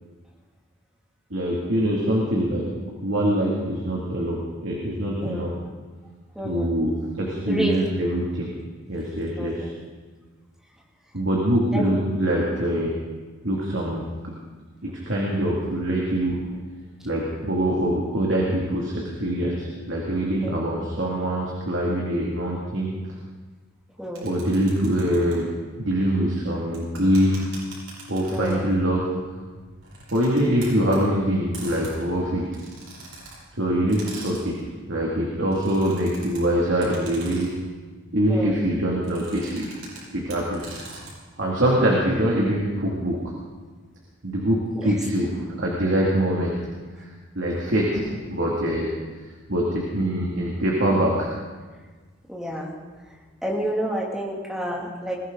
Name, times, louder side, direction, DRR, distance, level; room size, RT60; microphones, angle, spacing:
voice 1, 1.3-5.5 6.4-8.6 8.9-9.7 11.1-13.0 13.4-14.1 14.8-16.4 17.0-22.9 24.2-27.5 28.1-29.3 30.1-32.5 33.6-34.6 34.9-37.5 38.1-39.7 40.1-40.7 41.4-43.2 44.2-46.7 46.9-47.1 47.3-48.9 49.2-51.3, right 1 dB, 65° right, -3 dB, 2.5 m, -24 dB
voice 2, 6.3-6.7 7.5-7.7 9.4-9.7 11.7-11.9 20.4-20.6 24.0-24.3 28.3-28.7 38.3-38.6 41.8-42.0 44.8-44.9 52.3-52.7 53.4-55.2, equal, 5° right, -3 dB, 2.5 m, -29 dB
sound 1, 24.2-25.4 26.7-28.8 29.8-31.0 31.5-33.4 33.9-34.7 35.4-36.4 36.8-37.6 39.0-40.0 40.3-41.1, right 3 dB, 90° right, 7.0 m, -42 dB
21.5 x 16.0 x 4.0 m, 1.4 s
head